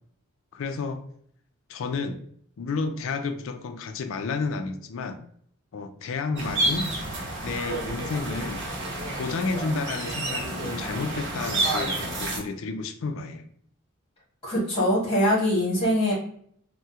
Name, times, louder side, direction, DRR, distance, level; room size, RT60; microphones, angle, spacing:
voice 1, 0.5-1.0 1.7-2.2 2.6-5.2 5.7-6.9 7.4-8.7 9.2-13.5, left 4 dB, 60° left, 0.4 m, -31 dB
sound 1, 6.4-12.4, right 2 dB, 55° right, 0.9 m, -30 dB
voice 2, 14.4-16.1, equal, 25° left, 1.4 m, -23 dB
3.5 x 2.1 x 2.7 m
head